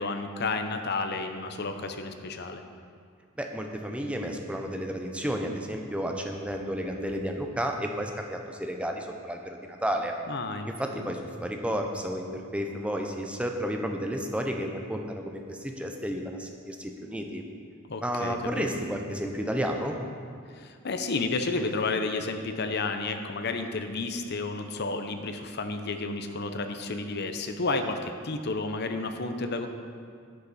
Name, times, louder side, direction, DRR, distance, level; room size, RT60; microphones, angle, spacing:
voice 1, 0.0-2.6 10.3-10.7 11.0-11.1 17.8-18.7 20.5-29.7, left 3 dB, 55° left, 7 dB, 0.7 m, -31 dB
voice 2, 3.4-10.1 10.7-17.4 18.0-20.0, equal, 5° right, 3 dB, 0.7 m, -32 dB
10.5 x 8.3 x 4.2 m, 2.2 s
head